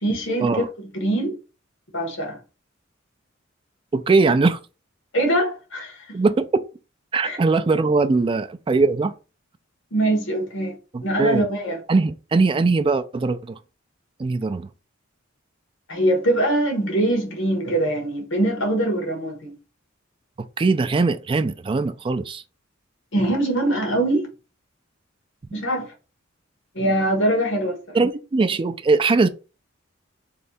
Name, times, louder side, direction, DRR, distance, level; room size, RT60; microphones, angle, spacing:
voice 1, 0.0-1.4 1.9-2.4 5.1-6.2 7.2-7.4 9.9-11.8 15.9-19.5 23.1-24.3 25.5-25.9 26.7-28.0, right 1 dB, 65° left, 1.4 m, -23 dB
voice 2, 3.9-4.6 6.1-6.6 7.1-9.1 10.9-11.5 11.9-13.6 14.2-14.7 20.6-22.4 27.9-29.3, right 3 dB, 25° right, 0.3 m, -20 dB
3.2 x 2.8 x 4.1 m
head